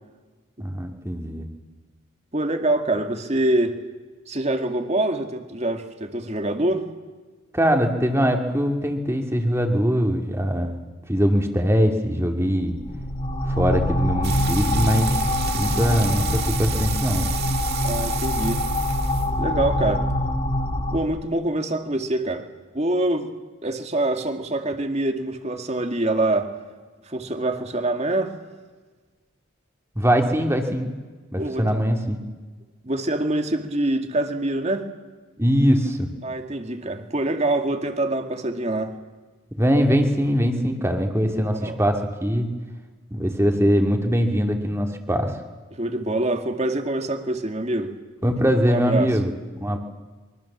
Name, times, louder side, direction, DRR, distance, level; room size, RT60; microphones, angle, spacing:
voice 1, 0.6-1.4 7.5-10.8 11.1-12.8 13.5-15.2 15.5-17.3 30.0-30.9 31.3-32.2 35.4-36.1 39.6-42.5 43.1-45.4 48.2-49.8, equal, 15° right, 3 dB, 2.5 m, -22 dB
voice 2, 2.3-3.8 4.3-6.9 17.8-18.6 19.4-20.1 20.9-22.5 22.7-23.3 23.6-26.5 27.1-28.3 31.4-31.8 32.8-34.9 36.2-39.0 41.2-41.8 45.7-47.9 48.7-49.1, right 1 dB, 35° right, 6 dB, 2.2 m, -25 dB
sound 1, 12.6-21.0, left 1 dB, 30° left, 3.3 m, -24 dB
sound 2, 14.2-20.0, right 10 dB, 50° right, 2.1 m, -33 dB
25.0 x 23.5 x 7.4 m, 1.3 s
head